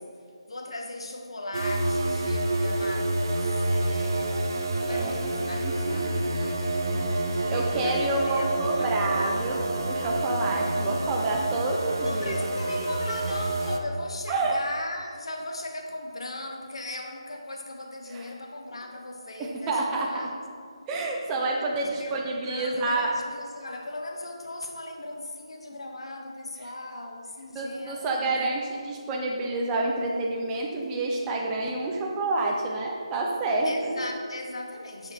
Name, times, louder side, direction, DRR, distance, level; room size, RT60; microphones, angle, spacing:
voice 1, 0.5-4.4 4.8-9.0 12.0-20.3 21.3-28.9 33.6-35.1, left 2 dB, 60° left, 3 dB, 1.0 m, -38 dB
sound 1, 1.5-13.8, right 2 dB, 35° right, 0.8 m, -28 dB
voice 2, 4.9-5.2 5.6-6.0 7.5-12.4 12.7-12.9 14.3-14.6 18.1-18.3 19.4-20.3 20.9-23.1 27.5-34.0, right 2 dB, 5° right, -2 dB, 0.5 m, -28 dB
9.4 x 6.9 x 4.2 m, 2.2 s
figure-of-eight pair, 180°, 3 cm